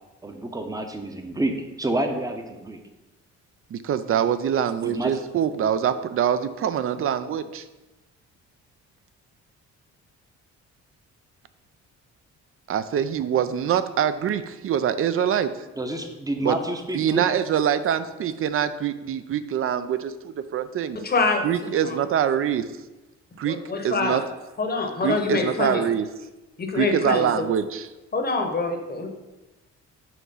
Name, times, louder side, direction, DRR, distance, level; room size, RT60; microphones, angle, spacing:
voice 1, 0.2-2.8 4.8-5.2 15.8-17.3, right 1 dB, 10° right, 5 dB, 0.7 m, -28 dB
voice 2, 3.7-7.6 12.7-15.5 16.4-16.5 16.9-21.0 21.4-22.6 23.4-23.6 23.8-24.2 25.0-26.0 26.7-27.9, right 9 dB, 45° right, 13 dB, 0.4 m, -24 dB
voice 3, 21.0-22.0 23.4-24.2 24.6-25.9 26.6-27.4 28.1-29.1, left 3 dB, 30° left, 4 dB, 0.9 m, -25 dB
5.8 x 3.0 x 5.4 m, 1.1 s
cardioid pair, 90°, 30 cm